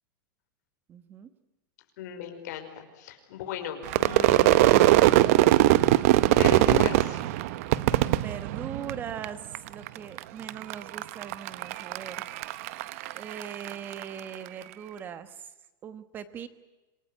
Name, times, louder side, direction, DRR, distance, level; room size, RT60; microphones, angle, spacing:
voice 1, 0.9-1.3 8.1-12.3 13.1-15.5 15.8-16.5, right 8 dB, 15° right, 13 dB, 1.2 m, -40 dB
voice 2, 2.0-4.8 6.4-7.2, left 9 dB, 50° left, 5 dB, 5.1 m, -36 dB
Crowd / Fireworks, 3.9-9.2 9.5-10.2 10.5-14.0, right 16 dB, 40° right, 0.8 m, -21 dB
27.0 x 19.0 x 9.8 m, 1.1 s
supercardioid pair, 180°, 12 cm